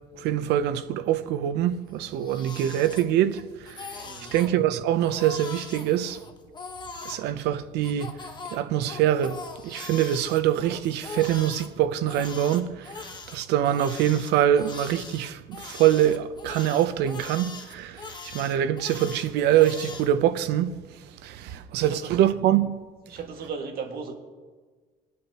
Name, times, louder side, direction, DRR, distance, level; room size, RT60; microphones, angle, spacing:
voice 1, 0.2-4.0 4.3-6.2 7.0-8.1 8.5-20.7 21.2-22.7, right 11 dB, 85° right, 0.7 m, -24 dB
Crying sobbing, 1.9-3.4 3.7-4.5 5.0-7.2 7.8-11.7 12.1-20.1, left 4 dB, 25° left, 1.3 m, -41 dB
voice 2, 4.0-4.3 21.4-22.2 23.1-24.1, right 5 dB, 60° right, 1.9 m, -37 dB
22.5 x 8.5 x 2.9 m
cardioid pair, 110°, 17 cm